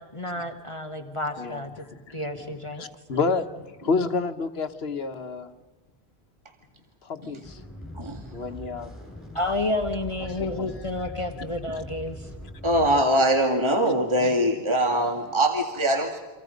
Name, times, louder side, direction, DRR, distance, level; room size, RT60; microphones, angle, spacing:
voice 1, 0.0-1.8 2.1-2.8 9.3-12.3, left 2 dB, 30° left, 5 dB, 1.4 m, -30 dB
voice 2, 1.4-2.3 2.8-5.5 7.0-7.6 8.0-8.9 10.2-10.8 11.3-11.4, left 4 dB, 70° left, 9 dB, 1.4 m, -30 dB
sound 1, 7.4-13.0, left 1 dB, ahead, 6.9 m, -41 dB
voice 3, 12.6-16.2, right 1 dB, 25° right, 3 dB, 2.0 m, -22 dB
30.0 x 25.5 x 5.2 m, 1.2 s
omnidirectional pair, 1.1 m